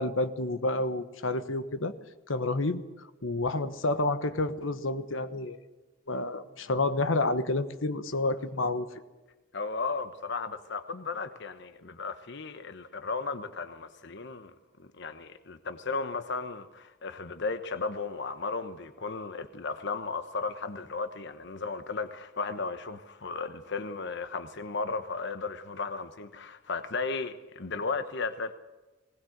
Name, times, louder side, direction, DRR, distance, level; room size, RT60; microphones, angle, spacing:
voice 1, 0.0-1.9 2.3-2.8 3.2-5.6 6.1-8.9, left 2 dB, 80° left, 1.3 m, -29 dB
voice 2, 9.5-14.5 14.8-28.5, left 4 dB, 60° left, 1.1 m, -35 dB
20.0 x 19.0 x 8.0 m
head